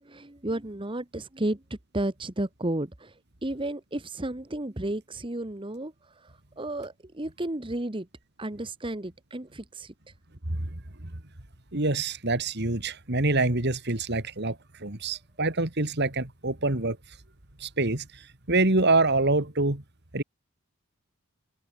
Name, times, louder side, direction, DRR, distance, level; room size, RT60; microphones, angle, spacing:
voice 1, 0.0-1.6 1.9-3.1 3.4-5.9 6.2-8.1 8.4-9.9, right 1 dB, 25° right, 1.2 m, -32 dB
voice 2, 10.5-11.1 11.7-17.0 17.6-18.2 18.5-19.8 20.1-20.2, right 2 dB, 50° right, 2.5 m, -26 dB
head